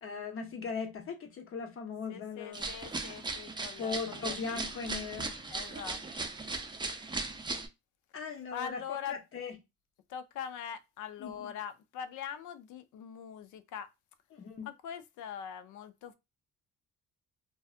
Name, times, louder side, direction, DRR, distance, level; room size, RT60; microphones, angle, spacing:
voice 1, 0.0-2.7 3.8-5.3 8.1-9.6 11.2-11.5 14.3-14.7, left 5 dB, 45° left, 0.7 m, -39 dB
voice 2, 2.1-4.4 5.5-6.0 8.5-9.2 10.1-13.9 14.6-16.1, left 8 dB, 80° left, 0.5 m, -42 dB
sound 1, 2.5-7.7, right 3 dB, 15° right, 0.5 m, -38 dB
2.6 x 2.3 x 2.4 m
cardioid pair, 90°, 30 cm